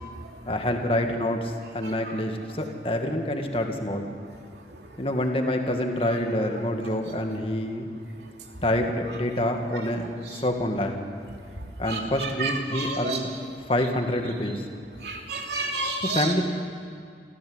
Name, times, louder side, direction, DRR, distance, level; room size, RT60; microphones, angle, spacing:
voice 1, 0.5-4.2 5.0-7.9 8.6-11.1 11.8-13.3 13.7-14.6 16.0-16.5, left 1 dB, 30° left, 4 dB, 2.0 m, -27 dB
voice 2, 11.9-13.2 15.0-16.3, right 3 dB, 70° right, 1 dB, 3.1 m, -30 dB
29.0 x 15.0 x 8.1 m, 2.3 s
head